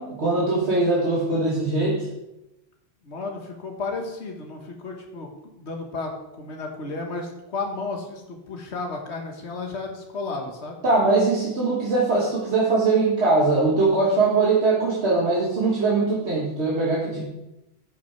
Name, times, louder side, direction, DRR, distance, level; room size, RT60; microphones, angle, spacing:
voice 1, 0.2-2.1 10.8-17.2, right 3 dB, 80° right, -5 dB, 1.9 m, -21 dB
voice 2, 3.0-5.3 5.6-6.1 6.4-10.8, left 3 dB, 85° left, 2 dB, 1.5 m, -33 dB
11.0 x 5.8 x 4.5 m, 0.91 s
omnidirectional pair, 1.1 m